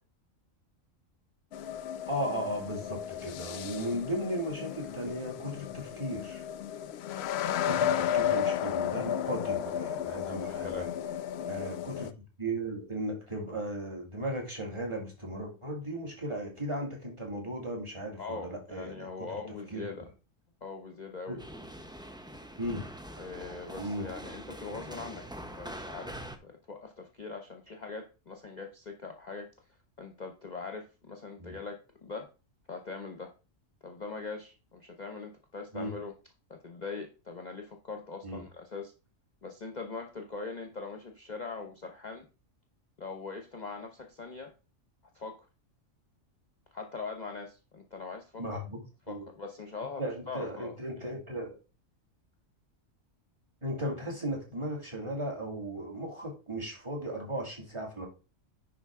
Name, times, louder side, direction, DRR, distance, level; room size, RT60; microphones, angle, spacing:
sound 1, 1.5-12.1, left 9 dB, 65° left, 0.7 m, -33 dB
voice 1, 2.0-6.4 7.6-10.9 11.5-12.1 12.4-19.4 19.7-19.9 21.3-21.4 22.6-22.9 23.8-24.1 31.4-31.6 35.7-35.9 38.2-38.4 48.4-49.3 50.0-51.6 53.6-58.1, right 1 dB, 20° right, -1 dB, 2.4 m, -36 dB
voice 2, 10.2-10.9 11.4-11.5 18.2-20.1 20.6-21.4 23.2-29.5 30.0-32.3 32.7-33.3 33.8-36.1 36.5-38.9 39.4-42.2 43.0-44.5 45.1-45.4 46.7-48.6 49.1-51.1, left 4 dB, 40° left, 4 dB, 0.9 m, -42 dB
sound 2, 21.4-26.4, equal, 5° right, 0.5 m, -44 dB
10.0 x 4.6 x 3.6 m, 0.32 s
omnidirectional pair, 1.4 m